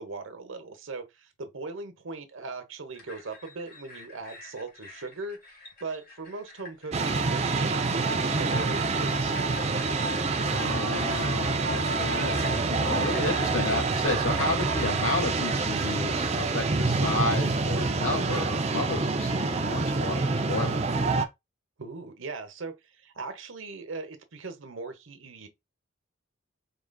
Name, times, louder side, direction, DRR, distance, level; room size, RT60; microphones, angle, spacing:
voice 1, 0.0-5.4 5.8-9.7 21.8-25.5, right 3 dB, 75° right, 1.0 m, -39 dB
sound 1, 2.9-16.9, left 3 dB, 45° left, 1.5 m, -49 dB
sound 2, 6.9-21.3, right 3 dB, 30° right, 0.5 m, -27 dB
voice 2, 10.4-20.8, left 2 dB, 85° left, 2.0 m, -32 dB
4.7 x 3.9 x 2.3 m
head